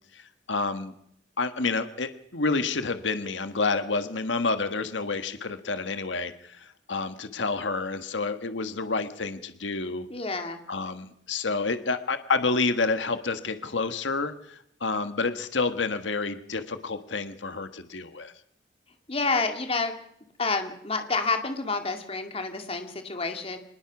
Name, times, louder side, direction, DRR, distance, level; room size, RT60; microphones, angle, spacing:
voice 1, 0.1-0.9 1.4-10.1 10.7-18.3, left 3 dB, 85° left, 9 dB, 1.5 m, -29 dB
voice 2, 10.1-10.6 19.1-19.9 20.4-23.6, left 3 dB, 30° left, 6 dB, 2.3 m, -29 dB
25.0 x 20.5 x 6.1 m, 0.73 s
head